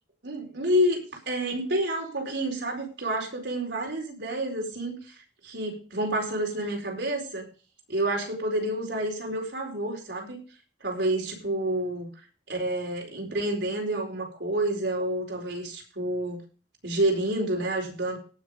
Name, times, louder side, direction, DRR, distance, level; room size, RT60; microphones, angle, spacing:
voice 1, 0.2-5.1 5.4-7.5 7.9-10.4 10.8-12.1 12.5-16.4 16.8-18.2, right 1 dB, 70° right, 1 dB, 4.5 m, -29 dB
18.0 x 6.4 x 5.1 m, 0.37 s
head